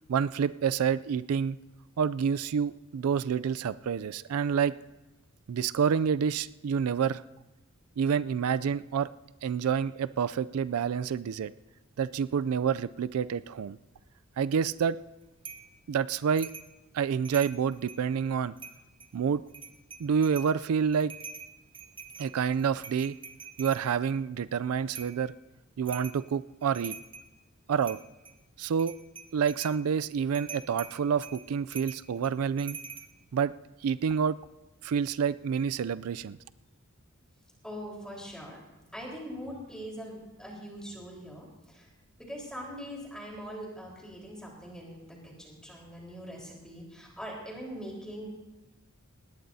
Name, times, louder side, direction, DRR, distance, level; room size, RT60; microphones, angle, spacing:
voice 1, 0.1-1.6 2.0-4.7 5.5-7.2 8.0-9.1 9.4-11.5 12.0-13.8 14.4-15.0 15.9-16.5 16.9-18.5 19.1-19.4 20.0-21.1 22.2-23.1 23.6-25.3 25.8-27.0 27.7-28.0 28.6-28.9 29.3-32.8 33.3-33.5 33.8-34.4 34.8-36.4, right 7 dB, 85° right, 15 dB, 0.4 m, -28 dB
sound 1, 15.4-15.7 16.4-16.7 17.1-18.1 18.6-19.1 19.5-20.6 20.9-23.8 24.9-25.2 25.9-26.2 26.6-27.3 27.8-28.4 28.7-29.8 30.3-33.1, right 6 dB, 25° right, 0.8 m, -44 dB
voice 2, 37.6-38.6 38.9-41.9 42.2-48.3, equal, 5° left, -2 dB, 4.1 m, -42 dB
20.0 x 17.0 x 2.7 m, 1.1 s
head